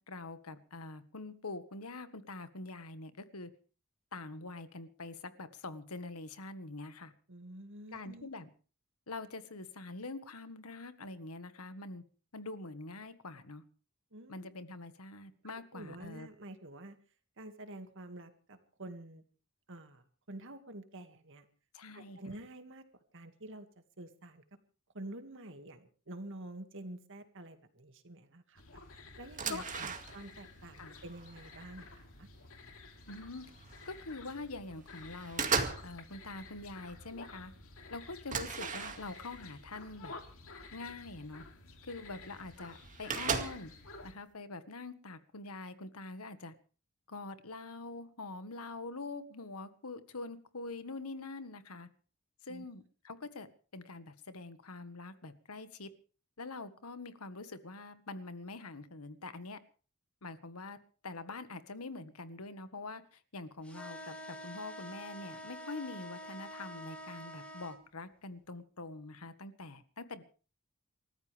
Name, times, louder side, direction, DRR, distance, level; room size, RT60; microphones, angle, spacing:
voice 1, 0.0-3.5 4.1-7.1 7.9-8.5 9.1-12.0 12.3-13.6 14.3-16.3 21.7-22.2 29.5-30.2 30.7-31.0 33.1-33.5 33.8-37.5 37.9-40.2 40.7-41.4 41.8-43.7 44.0-46.5 47.1-51.9 52.4-53.5 53.7-55.9 56.4-59.6 60.2-60.8 61.0-70.2, left 3 dB, 85° left, 11 dB, 1.6 m, -45 dB
voice 2, 7.3-8.3 14.1-14.6 15.7-17.0 17.4-19.2 19.7-21.4 21.9-22.9 23.1-23.7 24.0-24.4 24.9-28.6 29.2-32.3 52.5-52.6, right 1 dB, 60° right, 7 dB, 2.2 m, -48 dB
sound 1, 28.6-44.1, left 3 dB, 70° left, 2.9 m, -52 dB
sound 2, 29.2-30.4 30.8-32.0 32.6-32.7 33.1-34.0 34.4-34.8 35.1-36.0 36.3-36.7 37.2-37.3 37.6-37.7 38.3-39.4 40.2-40.3 40.8-40.9 42.0-42.1 42.2-42.3 42.5-43.8, right 5 dB, 35° right, 2.2 m, -37 dB
sound 3, 63.6-67.8, equal, 5° left, 2.5 m, -46 dB
29.0 x 14.0 x 3.5 m, 0.38 s
head